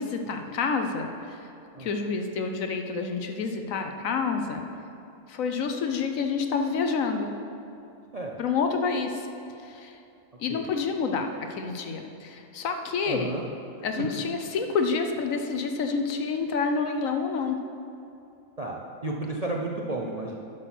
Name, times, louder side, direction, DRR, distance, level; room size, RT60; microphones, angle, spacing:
voice 1, 0.0-1.5 1.8-4.6 5.3-7.3 8.4-9.3 9.6-10.0 10.4-13.3 13.8-17.6, left 5 dB, 65° left, 5 dB, 1.1 m, -28 dB
voice 2, 13.1-13.4 18.6-20.4, right 2 dB, 40° right, -1 dB, 0.5 m, -32 dB
11.0 x 6.3 x 5.9 m, 2.7 s
omnidirectional pair, 1.6 m